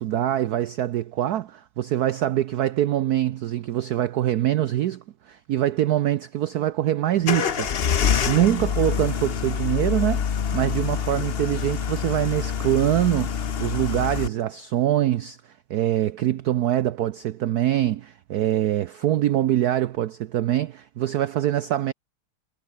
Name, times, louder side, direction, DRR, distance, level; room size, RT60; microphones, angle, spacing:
voice 1, 0.0-7.7 8.3-10.3 10.5-15.4 15.7-21.9, right 12 dB, 85° right, 0.8 m, -24 dB
sound 1, 7.2-14.3, left 7 dB, 85° left, 0.5 m, -26 dB
omnidirectional pair, 2.4 m